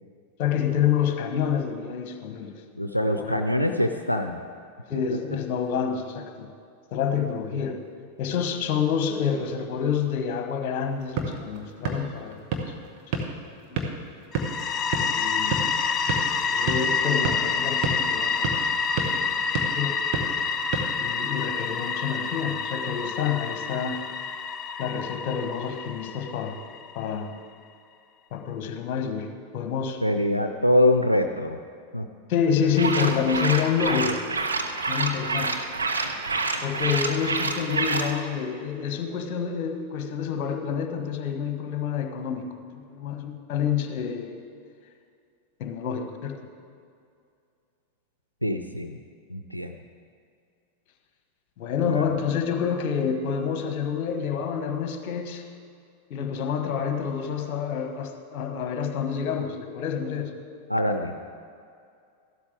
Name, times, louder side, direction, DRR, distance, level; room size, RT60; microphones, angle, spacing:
voice 1, 0.4-2.6 3.2-3.5 4.9-6.5 6.9-7.8 8.2-12.7 13.7-14.0 15.0-15.6 16.1-18.5 19.1-19.3 19.7-19.9 21.0-24.0 24.8-26.6 26.9-27.3 28.3-29.3 29.5-30.0 32.3-34.2 34.9-35.5 36.6-42.5 42.7-44.3 45.6-46.4 51.6-55.4 56.1-60.3, left 7 dB, 45° left, 6 dB, 1.3 m, -28 dB
voice 2, 2.8-4.4 30.0-31.6 31.9-32.1 48.4-49.0 49.3-49.7 51.8-52.1 60.7-61.1, left 1 dB, 90° left, 7 dB, 0.5 m, -24 dB
sound 1, 10.8-21.6, right 4 dB, 40° right, 1.4 m, -33 dB
sound 2, 14.3-27.0, left 5 dB, 25° left, 0.5 m, -28 dB
sound 3, 32.7-38.1, right 3 dB, 75° right, 0.8 m, -28 dB
14.0 x 12.0 x 3.5 m, 2.4 s
figure-of-eight pair, 90°, 0 cm